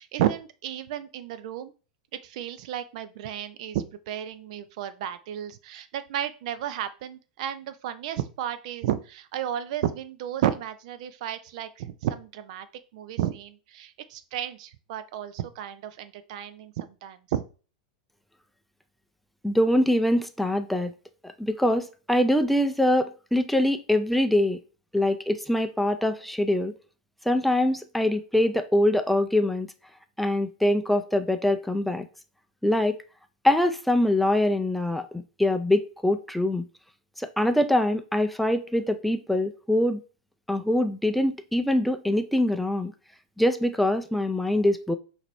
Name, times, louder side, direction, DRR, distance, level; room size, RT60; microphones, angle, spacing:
voice 1, 0.0-1.7 2.2-12.7 12.9-17.4, right 11 dB, 55° right, 0.5 m, -32 dB
voice 2, 19.4-20.9 21.4-24.6 24.9-26.7 27.3-29.7 30.2-32.1 32.6-33.0 33.4-36.6 37.2-40.0 40.5-42.9 43.4-44.9, left 1 dB, ahead, 0.4 m, -24 dB
5.9 x 2.7 x 3.1 m
hypercardioid pair, 95°, 4 cm